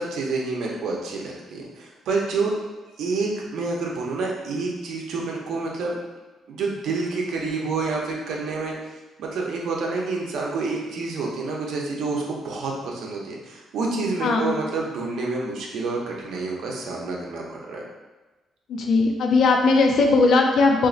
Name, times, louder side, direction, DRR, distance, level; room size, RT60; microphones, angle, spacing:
voice 1, 0.0-2.5 3.0-6.0 6.5-8.7 9.2-17.8, right 3 dB, 75° right, -2 dB, 0.6 m, -28 dB
voice 2, 14.2-14.5 18.7-20.9, left 3 dB, 70° left, 2 dB, 0.4 m, -18 dB
3.8 x 2.5 x 2.4 m, 1.2 s
cardioid pair, 90°, 0 cm